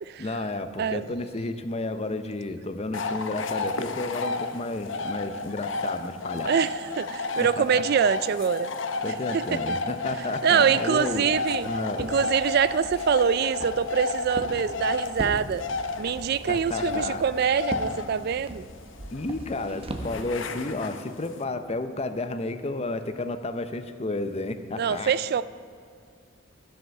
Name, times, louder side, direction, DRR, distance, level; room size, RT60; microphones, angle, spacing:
voice 1, 0.2-6.5 7.4-7.8 9.0-11.4 11.6-12.1 16.5-17.2 19.1-25.1, left 2 dB, 30° left, 9 dB, 0.7 m, -32 dB
sound 1, 2.9-21.4, left 3 dB, 70° left, 0.8 m, -32 dB
voice 2, 6.4-8.7 9.3-9.6 10.4-11.7 12.0-15.6 16.0-18.6 24.8-25.4, right 7 dB, 50° right, 16 dB, 0.3 m, -24 dB
Walk footsteps, 10.9-20.3, right 1 dB, 30° right, 0.9 m, -40 dB
14.0 x 7.9 x 6.6 m, 2.3 s
head